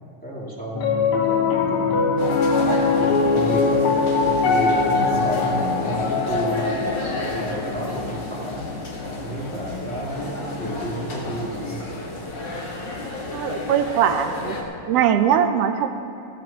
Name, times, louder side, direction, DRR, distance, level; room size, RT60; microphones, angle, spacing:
voice 1, 0.2-4.1 4.4-8.6 9.1-11.8, right 1 dB, 5° left, -7 dB, 2.3 m, -31 dB
Piano, 0.7-11.1, left 4 dB, 60° left, 1.7 m, -23 dB
sound 1, 2.2-14.6, left 2 dB, 45° left, 2.0 m, -31 dB
voice 2, 13.3-14.6 14.9-16.0, right 9 dB, 80° right, 7 dB, 1.5 m, -21 dB
16.5 x 15.5 x 3.0 m, 2.8 s
omnidirectional pair, 3.4 m